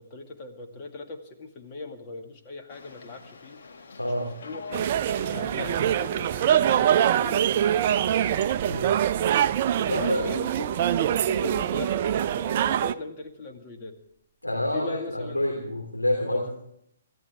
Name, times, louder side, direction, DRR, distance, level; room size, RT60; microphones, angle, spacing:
voice 1, 0.0-4.7 5.2-8.2 9.9-10.8 11.1-14.0 14.7-15.7 16.2-16.5, left 3 dB, 30° left, 4 dB, 2.2 m, -40 dB
sound 1, 2.7-8.5, left 4 dB, 55° left, 2.0 m, -43 dB
sound 2, 4.7-12.9, right 10 dB, 40° right, 0.5 m, -24 dB
Bowed string instrument, 7.8-12.7, right 4 dB, 10° right, 2.4 m, -45 dB
voice 2, 9.8-10.3 11.3-11.4 14.4-16.5, left 1 dB, 85° left, 0 dB, 3.2 m, -28 dB
27.5 x 13.5 x 3.6 m, 0.73 s
figure-of-eight pair, 125°, 0 cm